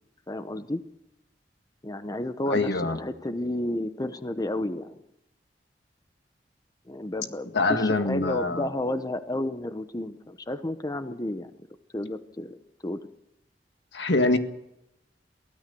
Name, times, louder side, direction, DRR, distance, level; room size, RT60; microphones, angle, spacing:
voice 1, 0.3-0.8 1.8-5.0 6.9-11.5 11.9-12.6 12.8-13.0, left 1 dB, 20° left, 11 dB, 0.8 m, -31 dB
voice 2, 2.5-3.0 7.5-8.7 13.9-14.4, left 2 dB, 85° left, 7 dB, 1.8 m, -24 dB
23.0 x 16.0 x 6.9 m, 0.85 s
head